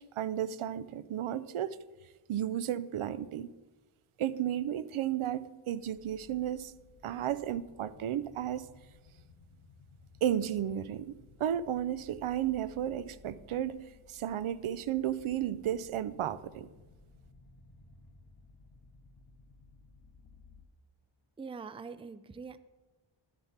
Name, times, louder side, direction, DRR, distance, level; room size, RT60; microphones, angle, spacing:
voice 1, 0.0-1.8 2.3-3.5 4.2-6.7 7.0-8.7 10.2-16.7, right 10 dB, 90° right, 0.6 m, -33 dB
sound 1, 5.8-20.7, left 3 dB, 50° left, 1.0 m, -58 dB
voice 2, 21.4-22.6, right 5 dB, 15° right, 0.3 m, -43 dB
11.0 x 7.0 x 5.8 m
wide cardioid pair, 120°, 48 cm